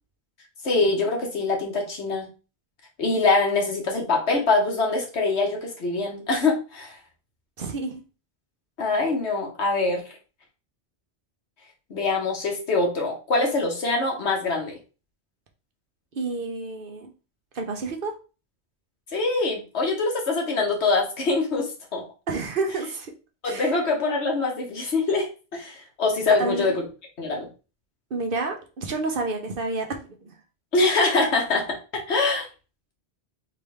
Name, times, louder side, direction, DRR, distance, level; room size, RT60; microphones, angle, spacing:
voice 1, 0.6-2.3 3.0-6.9 8.8-10.0 11.9-14.7 19.1-22.0 23.4-26.8 27.2-27.5 30.7-31.8 32.1-32.5, left 3 dB, 90° left, 0 dB, 1.5 m, -24 dB
voice 2, 7.6-8.0 16.1-17.1 17.5-18.1 22.3-23.1 23.4-23.7 26.4-26.8 28.1-30.3, right 3 dB, 55° right, 3 dB, 1.0 m, -29 dB
4.0 x 3.6 x 3.4 m, 0.33 s
omnidirectional pair, 1.1 m